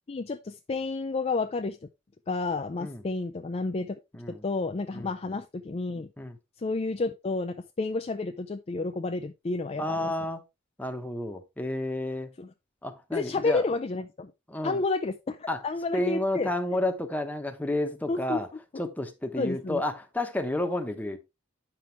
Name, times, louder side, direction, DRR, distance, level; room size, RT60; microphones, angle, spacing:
voice 1, 0.1-1.8 2.3-4.0 4.3-6.1 6.6-10.1 12.4-12.5 13.1-14.3 14.6-16.5 18.1-18.4 18.7-18.8 19.4-19.8, left 3 dB, 30° left, 0.4 m, -30 dB
voice 2, 4.1-4.4 4.9-5.1 6.2-6.4 9.8-10.4 10.8-12.3 12.8-13.6 14.5-14.8 15.5-15.6 15.9-18.5 18.8-21.2, left 1 dB, 10° left, 1.0 m, -31 dB
8.7 x 6.1 x 3.3 m
head